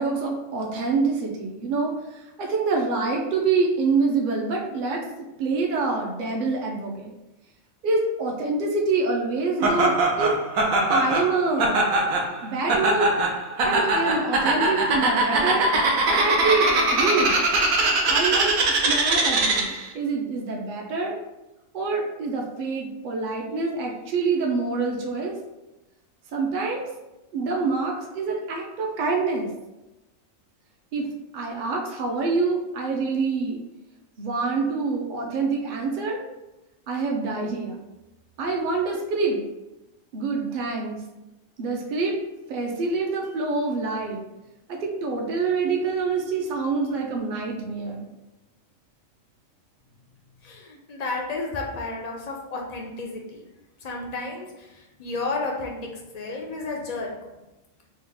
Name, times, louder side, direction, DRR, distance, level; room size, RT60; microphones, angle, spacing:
voice 1, 0.0-5.0 5.4-7.1 7.8-10.3 10.9-11.8 12.4-13.1 13.6-15.7 16.1-17.4 18.1-18.6 18.8-21.1 21.7-25.4 26.3-26.9 27.3-29.5 30.9-31.1 31.3-33.6 34.2-36.2 36.9-37.8 38.4-39.4 40.1-41.0 41.6-42.2 42.5-44.2 44.7-48.0, right 4 dB, 60° right, 0 dB, 0.5 m, -26 dB
Laughter, 9.6-19.9, right 2 dB, 90° right, 1.1 m, -22 dB
voice 2, 50.4-53.4 53.8-57.1, left 3 dB, 85° left, -1 dB, 0.3 m, -32 dB
3.7 x 2.3 x 3.3 m, 0.97 s
omnidirectional pair, 1.4 m